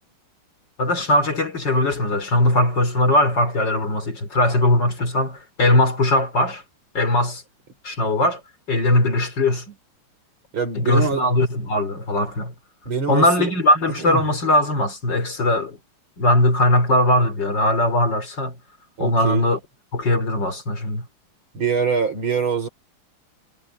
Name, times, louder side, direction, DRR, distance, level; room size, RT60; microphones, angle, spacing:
voice 1, 0.8-6.6 6.9-7.4 7.8-8.4 8.7-9.7 10.7-12.5 13.1-15.8 16.2-18.5 19.0-19.6 19.9-21.0, left 1 dB, 55° left, 4.6 m, -20 dB
voice 2, 10.5-11.3 12.9-13.5 14.0-14.3 19.0-19.5 21.5-22.7, right 6 dB, 65° right, 5.0 m, -24 dB
omnidirectional pair, 2.4 m